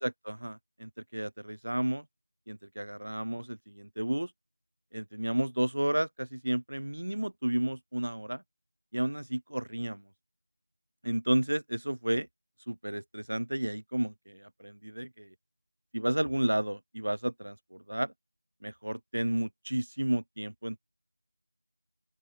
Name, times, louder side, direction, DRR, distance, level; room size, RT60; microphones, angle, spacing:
voice 1, 0.0-2.0 2.5-4.3 4.9-8.4 8.9-10.0 11.0-12.3 12.7-15.3 15.9-18.1 18.6-20.8, right 1 dB, 80° right, 2.4 m, -32 dB
open air
figure-of-eight pair, 180°, 0 cm